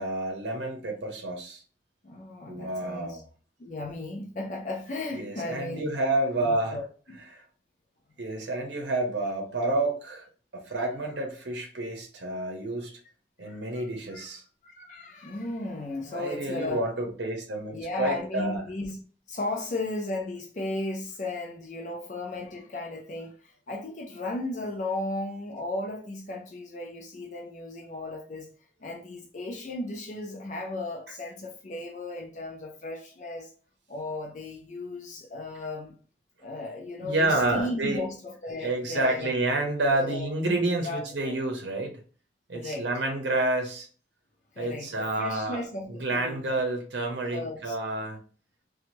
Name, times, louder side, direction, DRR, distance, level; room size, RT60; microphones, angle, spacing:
voice 1, 0.0-1.6 2.5-3.2 5.1-6.8 7.3-7.4 8.2-10.3 10.5-12.9 13.4-14.4 16.1-18.6 37.0-38.0 38.6-42.0 42.5-43.9 44.6-45.6 45.9-48.2, right 2 dB, 75° right, 0.7 m, -29 dB
voice 2, 2.0-3.2 3.6-6.0 6.4-7.2 13.4-13.8 14.1-14.3 14.6-16.9 17.7-19.0 19.3-28.5 28.8-33.5 33.9-36.0 36.4-39.3 39.9-41.3 42.5-42.9 44.5-46.5 47.2-47.7, left 2 dB, 40° left, 0.4 m, -35 dB
3.0 x 2.3 x 2.6 m
head